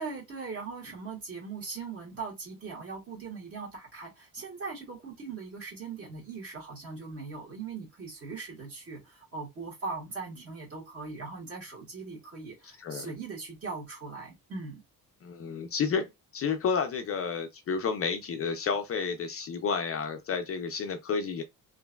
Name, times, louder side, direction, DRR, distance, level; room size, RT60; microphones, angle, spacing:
voice 1, 0.0-14.8, right 4 dB, 40° right, 1.5 m, -40 dB
voice 2, 15.2-21.4, left 5 dB, 40° left, 0.4 m, -31 dB
3.0 x 2.5 x 2.2 m
cardioid pair, 155°, 35 cm